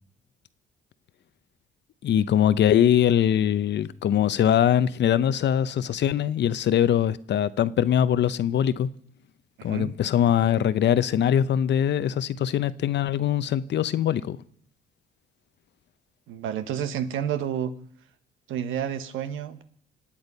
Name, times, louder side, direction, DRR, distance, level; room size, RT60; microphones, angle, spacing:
voice 1, 2.0-8.9 9.6-14.4, left 10 dB, 60° left, 0.8 m, -22 dB
voice 2, 9.6-9.9 16.3-17.8 18.5-19.6, right 9 dB, 85° right, 1.2 m, -30 dB
26.0 x 8.8 x 5.5 m
cardioid pair, 90°, 20 cm